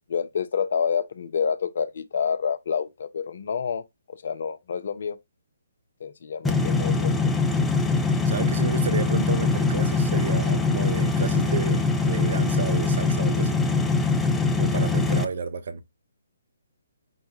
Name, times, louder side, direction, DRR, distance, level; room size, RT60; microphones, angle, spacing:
voice 1, 0.1-5.2 6.0-7.3, left 6 dB, 50° left, 0.6 m, -28 dB
sound 1, 6.4-15.2, left 3 dB, 5° left, 0.5 m, -23 dB
voice 2, 8.3-13.6 14.6-15.8, right 5 dB, 50° right, 0.6 m, -31 dB
5.4 x 2.2 x 2.9 m
figure-of-eight pair, 135°, 0 cm